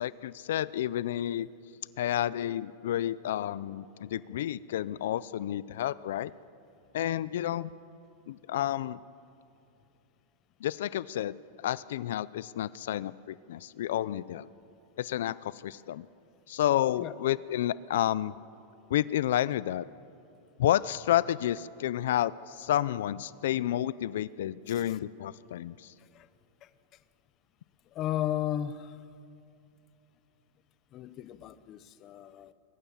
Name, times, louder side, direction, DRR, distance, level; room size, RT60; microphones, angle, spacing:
voice 1, 0.0-1.5 2.0-6.3 6.9-7.7 8.3-9.0 10.6-11.3 11.6-14.5 15.0-16.1 16.5-18.3 18.9-19.8 20.6-25.9, left 12 dB, 75° left, 0.5 m, -30 dB
voice 2, 27.9-29.0 30.9-32.5, left 11 dB, 30° left, 0.7 m, -35 dB
22.5 x 19.5 x 7.3 m
supercardioid pair, 165°, 0 cm